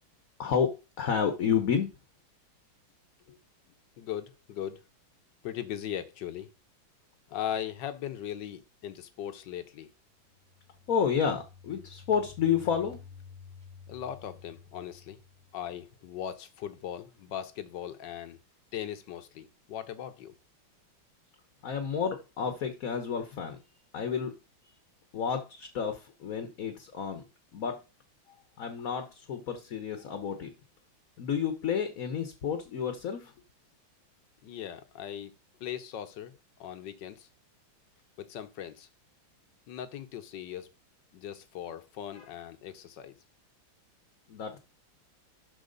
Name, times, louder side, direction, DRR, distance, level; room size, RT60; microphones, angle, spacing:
voice 1, 0.4-1.9 10.9-13.0 21.6-23.6 23.9-24.3 25.1-27.2 27.5-27.8 28.6-30.5 31.2-33.3 42.1-42.2 44.3-44.6, left 7 dB, 50° left, 7 dB, 1.3 m, -30 dB
voice 2, 4.0-4.8 5.4-6.5 7.3-9.9 13.9-15.2 15.5-18.4 18.7-20.3 34.4-35.3 35.6-36.3 36.6-37.3 38.2-38.9 39.7-40.7 41.1-43.1, left 10 dB, 65° left, 11 dB, 1.5 m, -39 dB
sound 1, 10.3-15.9, left 6 dB, 35° right, 2.1 m, -52 dB
11.5 x 4.6 x 4.0 m, 0.29 s
omnidirectional pair, 2.2 m